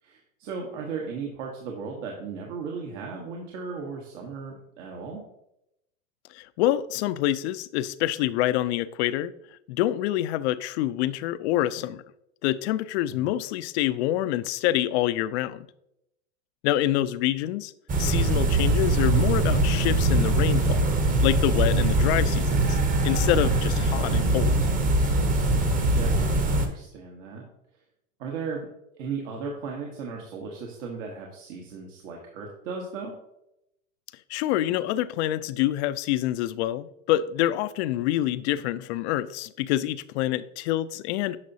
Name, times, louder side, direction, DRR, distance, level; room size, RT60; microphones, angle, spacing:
voice 1, 0.0-5.2 13.1-13.3 25.4-27.5 28.2-28.7 28.9-33.1, right 5 dB, 60° right, 0 dB, 1.4 m, -36 dB
voice 2, 6.3-9.3 9.7-12.0 12.4-15.7 16.6-17.7 18.0-20.9 21.2-22.8 23.0-24.6 34.3-41.4, left 14 dB, 55° left, 15 dB, 0.5 m, -26 dB
sound 1, 17.9-26.7, right 2 dB, 20° right, 0.9 m, -22 dB
9.6 x 5.8 x 2.8 m, 0.82 s
supercardioid pair, 125°, 41 cm